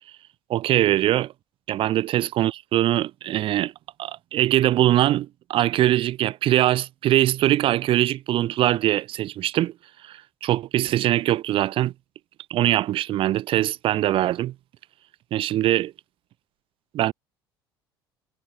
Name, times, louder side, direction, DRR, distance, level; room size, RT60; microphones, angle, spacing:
voice 1, 0.5-1.3 1.7-3.7 4.0-9.7 10.0-11.9 12.5-14.5 15.3-15.9 16.9-17.1, right 14 dB, 45° right, 1.3 m, -22 dB
figure-of-eight pair, 60°, 12 cm